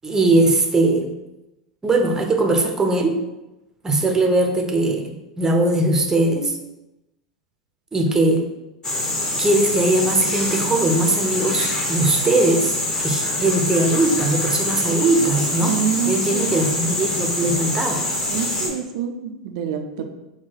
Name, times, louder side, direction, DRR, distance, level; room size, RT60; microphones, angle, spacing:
voice 1, 0.0-1.1 1.8-3.2 3.8-6.6 7.9-8.5 9.4-15.8 16.1-18.0, right 2 dB, 15° right, 3 dB, 0.6 m, -20 dB
sound 1, 8.8-18.7, left 1 dB, 25° left, 1.0 m, -24 dB
voice 2, 15.6-16.5 18.3-20.1, right 7 dB, 60° right, 6 dB, 0.4 m, -26 dB
4.0 x 2.3 x 3.9 m, 0.97 s
hypercardioid pair, 90°, 3 cm